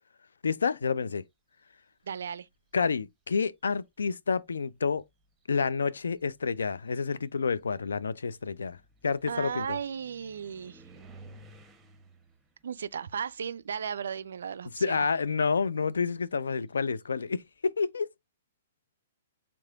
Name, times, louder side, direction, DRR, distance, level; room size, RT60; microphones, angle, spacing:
voice 1, 0.4-1.2 2.7-5.0 5.5-8.8 9.0-9.8 14.8-18.1, left 5 dB, 70° left, 0.3 m, -29 dB
voice 2, 2.0-2.5 9.3-10.8 12.6-15.1, right 7 dB, 65° right, 0.3 m, -35 dB
sound 1, 2.4-2.9 3.9-4.0 4.6-14.5 14.8-17.4, right 2 dB, 10° right, 0.9 m, -57 dB
4.7 x 3.6 x 2.4 m
figure-of-eight pair, 115°, 0 cm